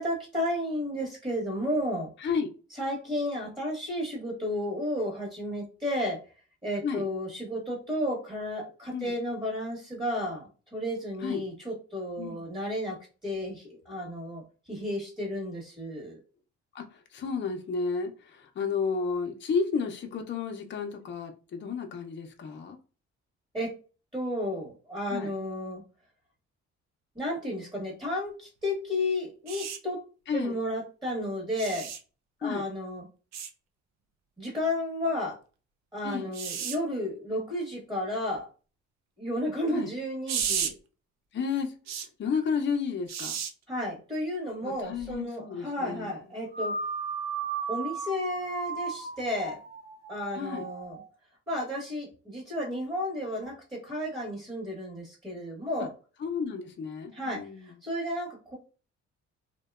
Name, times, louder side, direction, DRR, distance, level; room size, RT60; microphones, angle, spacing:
voice 1, 0.0-2.1 2.8-6.2 6.6-14.4 14.7-16.2 23.5-23.7 24.1-25.8 27.1-30.0 30.3-31.9 32.4-33.1 34.4-35.4 35.9-38.5 39.2-40.8 43.7-46.8 47.7-49.6 50.1-51.0 51.5-55.9 57.1-58.6, left 1 dB, 15° right, -2 dB, 1.0 m, -32 dB
voice 2, 2.2-2.5 6.8-7.1 8.9-9.1 11.2-11.4 12.2-12.4 16.7-22.8 25.1-25.3 30.3-30.6 32.4-32.7 36.0-36.3 39.7-39.9 41.3-41.7 42.2-43.4 44.6-46.1 50.3-50.7 56.2-57.8, left 5 dB, 40° left, 4 dB, 0.5 m, -32 dB
sound 1, 29.5-29.8 31.6-32.0 33.3-33.5 36.3-36.8 40.3-40.7 41.9-42.1 43.1-43.5 45.0-45.2, right 8 dB, 60° right, 0.5 m, -32 dB
sound 2, 46.5-51.1, right 4 dB, 45° right, 0.9 m, -35 dB
2.7 x 2.1 x 2.3 m, 0.36 s
cardioid pair, 90°, 30 cm